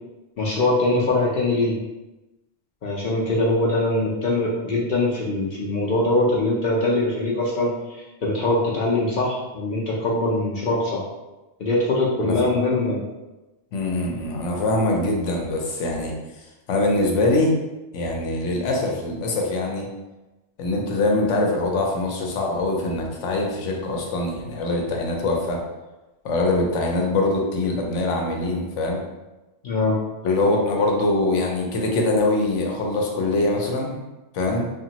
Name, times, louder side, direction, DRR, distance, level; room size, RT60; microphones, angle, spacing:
voice 1, 0.4-1.8 2.8-11.0 11.6-13.0 29.6-30.0, left 2 dB, 60° left, -4 dB, 0.6 m, -22 dB
voice 2, 13.7-17.5 17.9-19.9 20.6-25.6 26.2-29.0 30.2-33.9 34.3-34.7, left 2 dB, 90° left, 0 dB, 1.0 m, -23 dB
2.9 x 2.4 x 2.8 m, 1.1 s
omnidirectional pair, 1.2 m